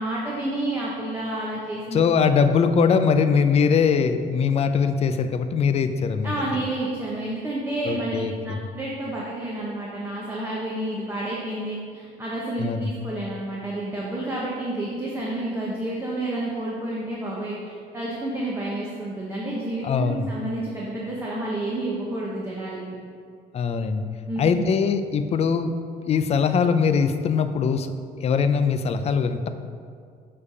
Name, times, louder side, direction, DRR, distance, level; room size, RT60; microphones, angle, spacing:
voice 1, 0.0-2.0 6.2-23.0 24.3-24.6, right 1 dB, 15° right, -6 dB, 1.0 m, -30 dB
voice 2, 1.9-6.3 7.8-8.6 12.6-12.9 19.8-20.3 23.5-24.0 24.4-25.7 26.0-27.9 28.2-29.5, left 6 dB, 40° left, 9 dB, 0.4 m, -21 dB
6.9 x 3.4 x 5.5 m, 2.2 s
cardioid pair, 110°, 17 cm